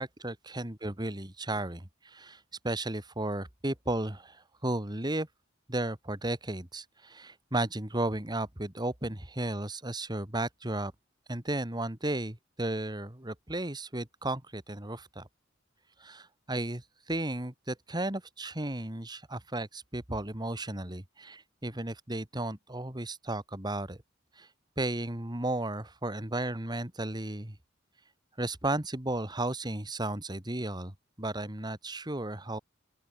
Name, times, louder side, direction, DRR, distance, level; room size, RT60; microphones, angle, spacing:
voice 1, 0.0-2.4 2.6-5.3 5.7-10.9 11.3-15.3 16.0-24.0 24.4-24.5 24.8-27.6 28.4-32.6, right 1 dB, 20° right, 2.4 m, -34 dB
open air
head